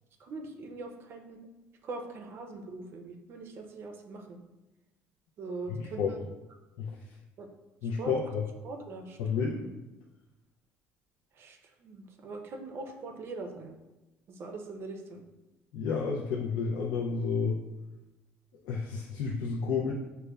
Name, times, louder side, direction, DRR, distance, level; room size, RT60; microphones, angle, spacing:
voice 1, 0.2-1.4 1.8-4.4 5.4-6.2 7.4-7.5 8.0-8.1 8.6-9.7 11.4-13.7 14.3-15.2, right 3 dB, 50° right, 4 dB, 0.5 m, -42 dB
voice 2, 5.8-6.1 6.8-6.9 7.8-8.5 9.2-9.5 15.7-17.6 18.6-19.9, left 5 dB, 85° left, -3 dB, 0.4 m, -30 dB
4.8 x 2.1 x 2.2 m, 1.1 s
cardioid pair, 110°, 5 cm